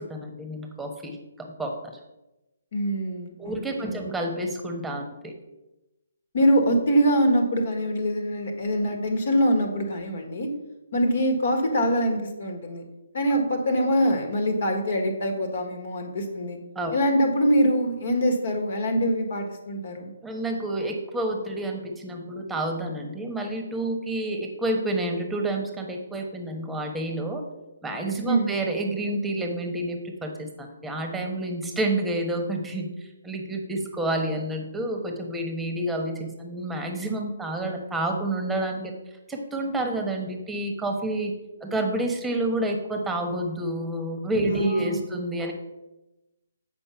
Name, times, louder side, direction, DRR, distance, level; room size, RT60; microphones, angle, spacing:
voice 1, 0.0-1.7 3.4-5.3 16.7-16.9 20.2-27.4 27.8-38.9 39.3-41.3 41.6-45.5, right 1 dB, 5° right, 3 dB, 1.2 m, -29 dB
voice 2, 2.7-4.0 6.3-10.5 10.9-12.8 13.1-16.6 16.9-20.1 28.2-28.5 44.4-45.0, equal, 55° left, 5 dB, 1.7 m, -24 dB
8.1 x 5.3 x 5.7 m, 0.99 s
figure-of-eight pair, 140°, 0 cm